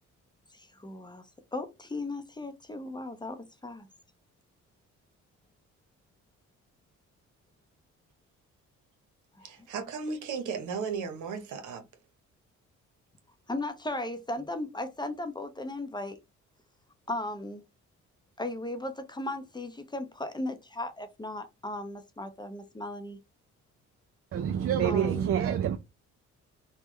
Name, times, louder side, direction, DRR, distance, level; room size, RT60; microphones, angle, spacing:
voice 1, 0.5-1.3 1.5-3.9 9.4-9.5 13.5-16.2 17.1-17.6 18.4-23.2 24.8-25.3, left 2 dB, 15° left, 0.6 m, -36 dB
voice 2, 9.4-11.8, right 5 dB, 80° right, 0.9 m, -35 dB
voice 3, 24.3-25.8, right 9 dB, 50° right, 0.4 m, -27 dB
3.4 x 2.1 x 3.0 m
cardioid pair, 90°, 30 cm